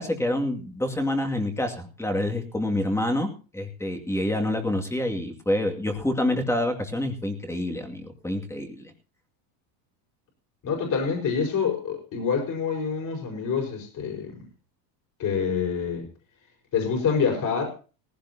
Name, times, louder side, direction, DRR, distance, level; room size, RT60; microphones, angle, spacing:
voice 1, 0.0-8.9, left 1 dB, 5° left, 4 dB, 2.2 m, -27 dB
voice 2, 10.6-14.4 15.2-16.1 16.7-17.7, left 6 dB, 40° left, 0 dB, 5.0 m, -26 dB
18.5 x 16.0 x 2.8 m, 0.35 s
supercardioid pair, 135°, 48 cm